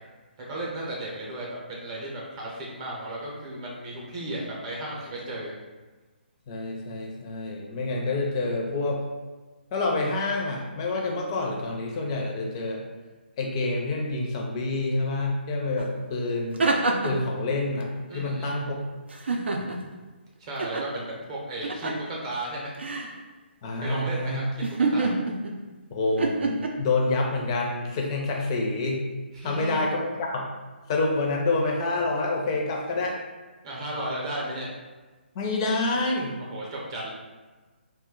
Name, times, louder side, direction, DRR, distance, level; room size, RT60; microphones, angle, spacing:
voice 1, 0.4-5.5 18.1-18.7 20.4-22.8 23.7-25.2 29.3-30.1 33.6-34.7 36.5-37.1, right 1 dB, 30° right, -4 dB, 0.7 m, -34 dB
voice 2, 6.5-9.0 9.7-12.8 13.4-16.6 17.0-18.8 19.6-19.9 23.6-24.4 25.9-29.0 29.4-30.5 30.9-33.2 35.3-36.4, left 2 dB, 30° left, 0 dB, 0.4 m, -27 dB
sound 1, 15.8-15.9 16.3-17.3 19.1-19.9 20.6-20.9 21.6-22.1 22.8-23.1 24.6-25.6 26.2-26.7, right 3 dB, 75° right, 0.4 m, -26 dB
2.2 x 2.1 x 3.6 m, 1.3 s
hypercardioid pair, 155°, 6 cm